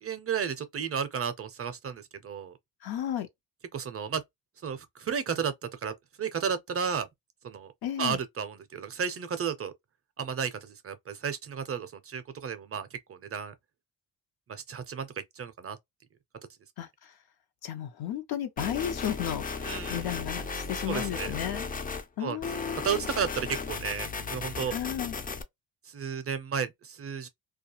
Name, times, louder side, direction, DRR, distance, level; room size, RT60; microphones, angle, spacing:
voice 1, 0.0-2.5 3.7-4.2 4.6-7.1 7.4-7.7 8.0-9.7 10.2-13.5 14.5-15.1 15.4-15.8 19.6-20.1 20.9-21.3 22.2-22.4 22.8-24.7 25.9-27.3, right 7 dB, 35° right, 0.4 m, -33 dB
voice 2, 2.8-3.3 7.8-8.2 16.8-17.1 17.6-21.7 22.2-23.0 24.7-25.2, left 10 dB, 70° left, 0.7 m, -34 dB
sound 1, 18.6-22.0 22.4-25.4, left 4 dB, 25° left, 0.4 m, -35 dB
2.3 x 2.3 x 2.7 m
cardioid pair, 110°, 39 cm